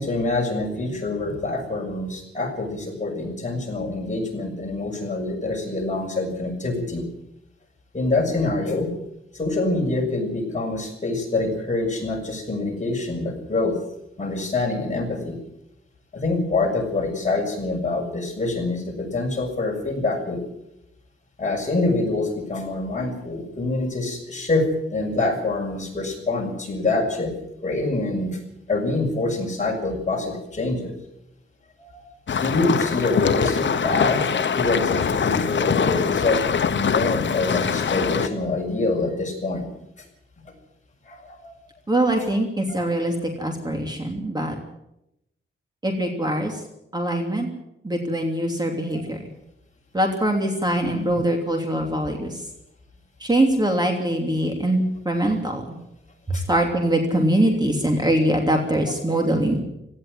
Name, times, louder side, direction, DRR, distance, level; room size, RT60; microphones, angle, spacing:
voice 1, 0.0-7.0 7.9-8.9 9.3-13.7 14.2-15.4 16.1-20.4 21.4-27.3 27.6-28.4 28.7-30.9 31.8-32.1 32.4-36.4 36.7-39.7 41.1-41.5 42.7-42.8 48.9-49.0 50.8-51.2 56.3-56.4 58.7-58.8, left 2 dB, 35° left, 0 dB, 6.8 m, -25 dB
sound 1, 32.3-38.3, left 6 dB, 60° left, 1.0 m, -23 dB
voice 2, 41.9-44.6 45.8-46.6 46.9-47.5 47.8-49.2 49.9-52.4 53.2-55.7 56.3-59.6, right 1 dB, 20° right, 2 dB, 3.0 m, -23 dB
17.5 x 15.5 x 10.0 m, 0.83 s
wide cardioid pair, 135°, 21 cm